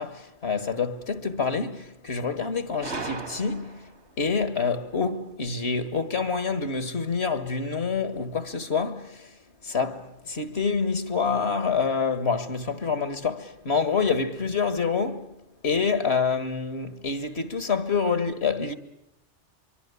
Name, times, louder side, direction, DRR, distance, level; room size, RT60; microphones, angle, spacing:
voice 1, 0.0-3.9 4.2-9.3 9.6-15.3 15.6-18.8, left 5 dB, 65° left, 2.0 m, -27 dB
Gunshot gunfire, 2.8-4.0, right 3 dB, 70° right, 2.6 m, -36 dB
24.5 x 24.0 x 8.3 m
omnidirectional pair, 1.2 m